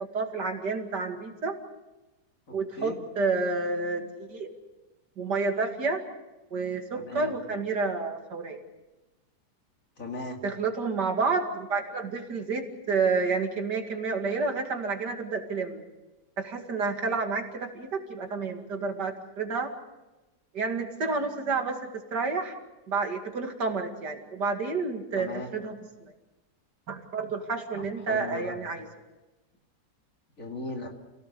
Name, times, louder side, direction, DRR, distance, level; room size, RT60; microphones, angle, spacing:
voice 1, 0.0-1.6 2.5-4.5 5.2-6.0 6.5-8.6 10.4-15.8 16.4-19.7 20.5-22.5 22.9-25.8 26.9-28.9, right 4 dB, 85° right, 4 dB, 2.9 m, -30 dB
voice 2, 2.5-3.0 6.9-7.3 10.0-10.4 25.1-25.5 27.7-28.6 30.4-30.9, left 2 dB, 50° left, 2 dB, 3.0 m, -38 dB
28.0 x 17.5 x 6.9 m, 1.1 s
omnidirectional pair, 1.8 m